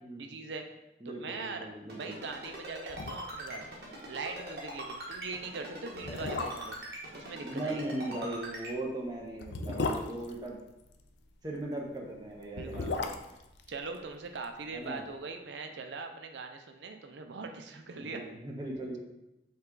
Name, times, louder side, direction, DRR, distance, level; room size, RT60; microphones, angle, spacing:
voice 1, 0.2-0.6 1.0-1.7 1.9-3.6 4.1-6.8 7.1-8.0 12.5-13.1 13.7-18.2, right 4 dB, 85° right, 5 dB, 0.5 m, -41 dB
voice 2, 1.0-2.1 7.4-10.6 11.4-13.1 14.7-15.0 18.0-19.0, right 1 dB, 20° right, -1 dB, 0.7 m, -38 dB
Ringtone, 1.9-8.7, right 1 dB, 65° right, 1.4 m, -41 dB
sound 1, 2.5-2.6 2.9-3.6 3.8-3.9 4.3-4.5 5.2-5.3 5.9-6.9 8.4-11.1 12.3-14.6 14.8-14.9, left 3 dB, 75° left, 0.4 m, -36 dB
5.5 x 2.4 x 3.8 m, 0.91 s
head